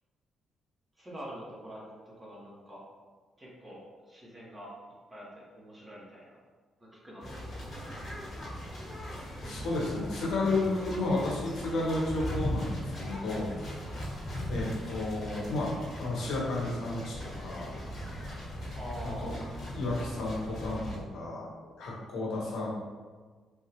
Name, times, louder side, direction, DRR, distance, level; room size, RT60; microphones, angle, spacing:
voice 1, 1.0-2.8 3.4-4.7 5.1-6.4 6.9-7.4 18.7-19.5, equal, 20° right, -6 dB, 1.1 m, -45 dB
sound 1, 7.2-21.0, equal, 50° left, 1.3 m, -39 dB
voice 2, 9.4-14.1 14.5-17.9 19.0-19.4 19.7-21.4 21.8-22.7, left 2 dB, 75° left, -4 dB, 0.9 m, -32 dB
3.5 x 2.3 x 2.9 m, 1.4 s
cardioid pair, 90°, 0 cm